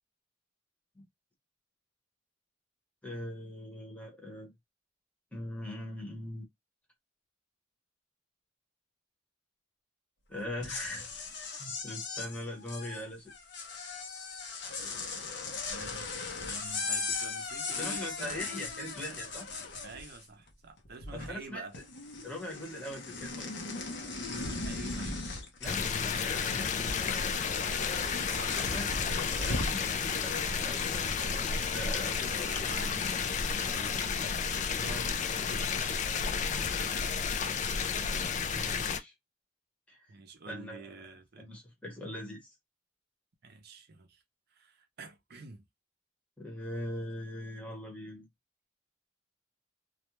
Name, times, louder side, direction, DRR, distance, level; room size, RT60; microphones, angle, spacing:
voice 1, 3.0-4.5 5.3-6.4 10.3-11.0 11.6-13.3 17.8-19.5 21.1-21.6 22.2-23.5 25.6-27.2 28.5-32.6 34.8-35.0 35.5-35.8 38.5-39.1 39.9-40.1 40.5-40.9 41.4-42.5 46.4-48.3, left 1 dB, 5° left, 0.9 m, -41 dB
sound 1, 10.5-20.5 20.8-21.5 21.7-29.8, left 3 dB, 65° left, 0.7 m, -38 dB
voice 2, 15.7-16.1 16.4-18.6 19.8-21.8 24.3-25.2 26.9-29.0 32.5-34.3 34.6-35.3 36.7-37.5 40.1-41.5 43.4-44.2 44.5-45.6, right 3 dB, 55° right, 0.6 m, -48 dB
sound 2, 25.6-39.0, left 6 dB, 40° left, 0.3 m, -32 dB
2.4 x 2.2 x 3.0 m
head